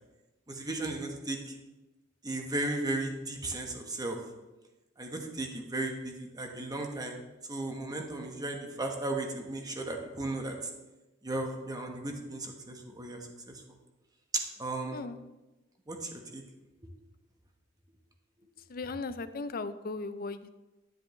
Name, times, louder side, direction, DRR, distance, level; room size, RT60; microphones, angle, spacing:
voice 1, 0.5-1.5 2.2-4.2 5.0-7.2 7.5-10.5 11.2-13.2 13.5-13.6 14.6-15.0 15.9-16.4, right 2 dB, 20° right, 2 dB, 1.3 m, -35 dB
voice 2, 18.7-20.5, left 3 dB, 50° left, 12 dB, 0.5 m, -37 dB
10.5 x 9.8 x 3.3 m, 1.0 s
head